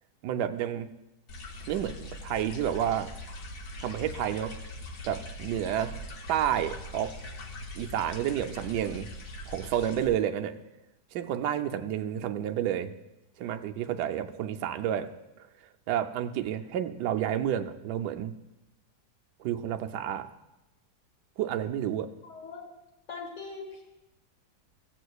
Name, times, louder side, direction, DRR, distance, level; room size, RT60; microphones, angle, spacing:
voice 1, 0.2-0.9 1.6-3.1 3.8-4.5 5.0-5.9 6.3-7.1 7.7-9.1 9.5-10.6 11.1-12.9 13.4-15.1 15.9-18.3 19.4-20.3 21.4-22.1, right 10 dB, 75° right, 8 dB, 1.1 m, -30 dB
sound 1, 1.3-10.1, left 1 dB, 60° left, 1.2 m, -42 dB
voice 2, 22.2-22.7 23.1-23.8, left 4 dB, 80° left, 0 dB, 2.4 m, -41 dB
16.0 x 8.1 x 2.3 m, 0.94 s
omnidirectional pair, 1.9 m